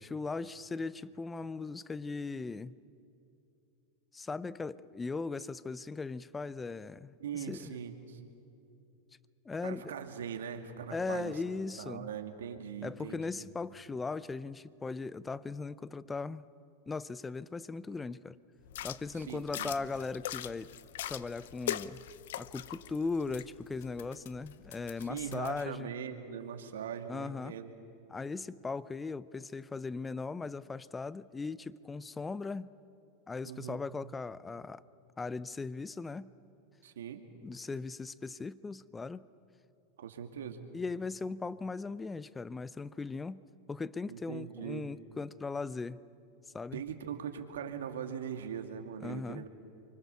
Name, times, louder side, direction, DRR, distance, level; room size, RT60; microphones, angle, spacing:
voice 1, 0.0-2.8 4.1-7.7 9.5-9.9 10.9-12.1 12.8-16.4 16.9-18.4 18.8-20.7 21.1-22.0 22.4-25.9 27.1-27.5 28.1-32.7 33.3-34.8 35.2-36.3 37.4-39.3 40.7-43.4 43.7-46.0 46.5-46.8 49.0-49.4, left 4 dB, 15° left, 18 dB, 0.6 m, -38 dB
voice 2, 7.2-8.2 9.6-11.4 11.8-13.5 19.1-19.7 25.0-27.7 33.4-33.8 36.8-37.2 40.0-40.7 44.1-44.9 46.7-49.5, right 8 dB, 85° right, 5 dB, 2.4 m, -41 dB
sound 1, 18.6-25.6, left 12 dB, 75° left, 0.7 m, -42 dB
29.0 x 25.0 x 7.0 m, 2.7 s
hypercardioid pair, 120°, 0 cm